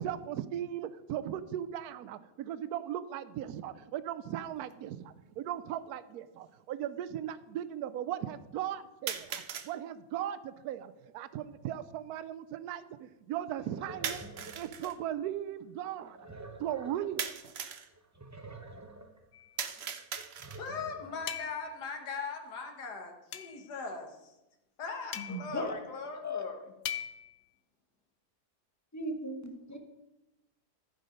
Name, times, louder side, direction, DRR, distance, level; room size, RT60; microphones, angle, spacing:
voice 1, 0.0-14.2 14.5-16.3 16.6-17.3, right 11 dB, 75° right, 14 dB, 1.1 m, -38 dB
sound 1, 4.7-4.8 5.8-5.9 9.1-9.7 14.0-15.0 17.2-17.9 19.6-20.7, right 7 dB, 55° right, 0.7 m, -38 dB
sound 2, 13.6-15.3 15.8-17.3 17.6-17.7 17.9-19.2 19.7-21.3, right 2 dB, 25° right, 0.3 m, -49 dB
sound 3, 19.3-19.6 21.3-21.8 23.3-23.7 25.1-25.6 26.9-27.4, left 9 dB, 60° left, 0.7 m, -40 dB
voice 2, 20.5-24.3 24.8-26.6, left 4 dB, 80° left, 4 dB, 1.9 m, -40 dB
voice 3, 25.1-25.8 26.2-26.4 28.9-29.8, left 1 dB, 15° left, 3 dB, 0.9 m, -37 dB
14.0 x 4.9 x 5.2 m, 1.0 s
omnidirectional pair, 1.7 m